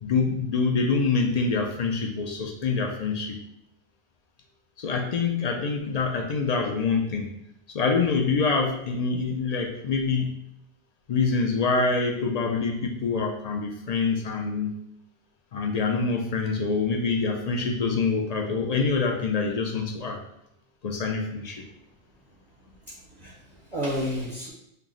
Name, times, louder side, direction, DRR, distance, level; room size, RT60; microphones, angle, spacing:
voice 1, 0.0-3.4 4.8-7.3 7.7-10.4 11.1-14.8 15.5-20.2 20.8-21.6, left 4 dB, 60° left, 2 dB, 0.4 m, -25 dB
voice 2, 22.8-24.5, equal, 40° right, -4 dB, 0.7 m, -32 dB
4.5 x 2.0 x 3.7 m, 0.82 s
omnidirectional pair, 1.1 m